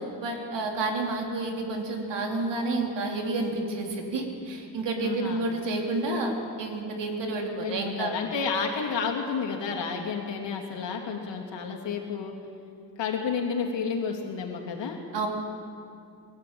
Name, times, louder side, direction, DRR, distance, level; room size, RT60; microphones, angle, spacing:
voice 1, 0.0-8.1 15.1-15.3, right 2 dB, 75° right, 1 dB, 3.4 m, -30 dB
voice 2, 5.0-5.4 7.6-12.3 13.0-15.0, left 5 dB, 80° left, 1 dB, 3.3 m, -31 dB
23.5 x 14.0 x 8.9 m, 2.5 s
cardioid pair, 75°, 43 cm